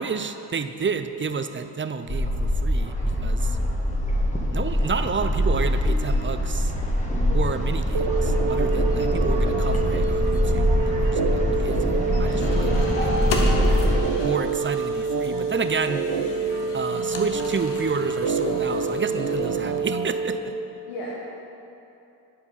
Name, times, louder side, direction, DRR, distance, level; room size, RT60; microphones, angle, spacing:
voice 1, 0.0-3.6 4.5-6.7 7.3-13.2 14.2-16.0 16.7-20.5, right 5 dB, 25° right, 9 dB, 0.5 m, -30 dB
sound 1, 2.1-14.0, equal, 15° left, 1.7 m, -23 dB
sound 2, 3.1-19.8, left 4 dB, 65° left, 1.2 m, -38 dB
sound 3, 7.9-20.4, right 4 dB, 50° right, 0.8 m, -27 dB
voice 2, 12.4-13.2 20.9-21.1, left 1 dB, 85° left, -5 dB, 1.2 m, -36 dB
10.0 x 4.7 x 5.5 m, 2.7 s
hypercardioid pair, 40°, 47 cm